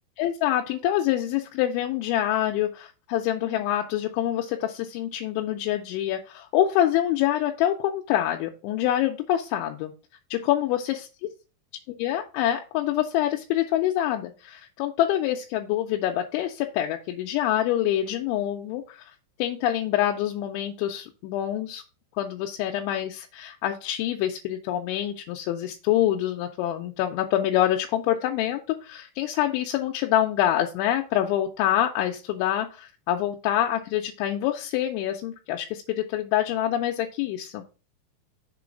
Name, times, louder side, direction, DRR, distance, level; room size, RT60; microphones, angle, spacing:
voice 1, 0.2-9.9 10.3-11.0 12.0-19.1 19.4-21.8 22.2-37.6, left 12 dB, 90° left, 2 dB, 3.0 m, -26 dB
6.9 x 3.2 x 5.0 m, 0.33 s
omnidirectional pair, 5.3 m